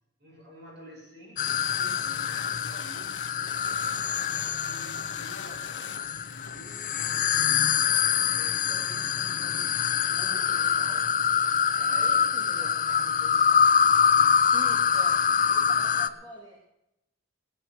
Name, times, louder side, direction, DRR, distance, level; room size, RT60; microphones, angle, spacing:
voice 1, 0.2-7.7 8.3-11.2 11.6-13.9, right 1 dB, 60° right, -2 dB, 7.4 m, -49 dB
sound 1, 1.4-16.1, left 7 dB, 45° left, 0.7 m, -25 dB
sound 2, 1.5-6.9, left 8 dB, 70° left, 1.0 m, -43 dB
voice 2, 12.0-12.7 14.5-16.6, left 1 dB, 25° right, -3 dB, 3.4 m, -46 dB
19.0 x 9.6 x 6.1 m, 0.85 s
head